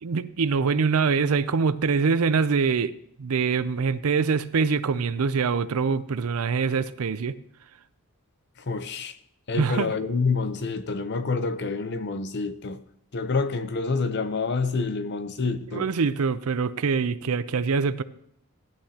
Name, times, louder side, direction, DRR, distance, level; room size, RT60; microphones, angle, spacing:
voice 1, 0.0-2.9 3.2-7.4 9.6-9.9 15.7-18.0, right 5 dB, 75° right, 0.5 m, -24 dB
voice 2, 8.6-9.2 9.5-12.9 13.1-15.9, left 4 dB, 50° left, 0.7 m, -27 dB
15.5 x 10.5 x 2.9 m
head